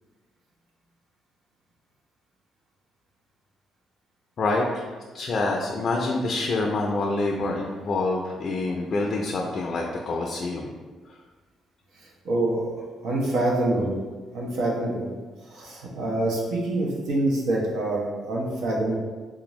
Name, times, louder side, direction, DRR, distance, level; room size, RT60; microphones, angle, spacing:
voice 1, 4.4-4.9 5.1-10.7, left 2 dB, 50° left, 0 dB, 0.4 m, -26 dB
voice 2, 12.2-12.6 13.0-14.0 14.3-15.1 15.5-19.0, right 1 dB, 85° right, -4 dB, 0.9 m, -25 dB
3.6 x 2.5 x 3.0 m, 1.4 s
cardioid pair, 90°, 0 cm